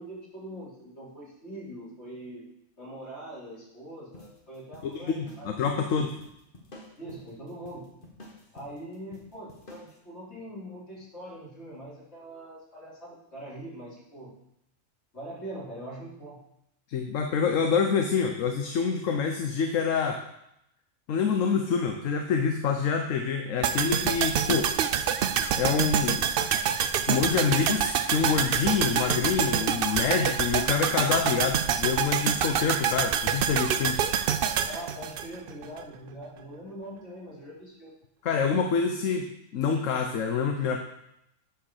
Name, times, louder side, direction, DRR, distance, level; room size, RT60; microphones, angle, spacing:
voice 1, 0.0-2.4 2.8-5.5 7.0-7.9 8.5-14.3 15.1-16.4 34.7-37.9, right 1 dB, 55° left, -8 dB, 4.2 m, -42 dB
sound 1, 4.1-10.0, left 2 dB, 40° left, 1.8 m, -51 dB
voice 2, 4.8-6.1 16.9-20.2 21.1-24.7 25.6-26.2 27.1-34.0 38.2-39.3 39.5-40.8, left 6 dB, 80° left, 4 dB, 1.1 m, -26 dB
sound 2, 23.6-35.8 36.1-36.2, right 8 dB, 60° right, 0.6 m, -26 dB
9.2 x 4.8 x 6.4 m, 0.81 s
omnidirectional pair, 1.3 m